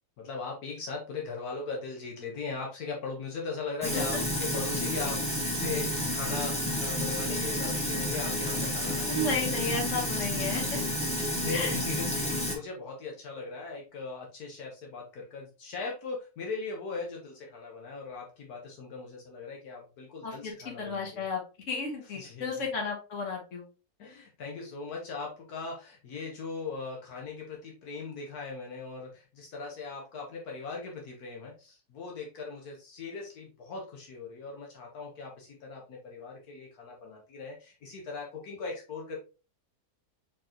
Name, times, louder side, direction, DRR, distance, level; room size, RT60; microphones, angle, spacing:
voice 1, 0.2-9.3 9.6-10.0 11.1-21.3 22.1-22.5 24.0-39.2, left 4 dB, 75° left, -1 dB, 1.5 m, -39 dB
Sink (filling or washing), 3.8-12.6, left 1 dB, 5° left, 1.5 m, -30 dB
voice 2, 3.9-4.2 9.1-10.8 11.5-11.8 20.2-20.5 20.8-21.4 21.7-23.6, left 3 dB, 55° left, 1 dB, 1.6 m, -33 dB
4.6 x 3.8 x 2.9 m, 0.33 s
omnidirectional pair, 1.6 m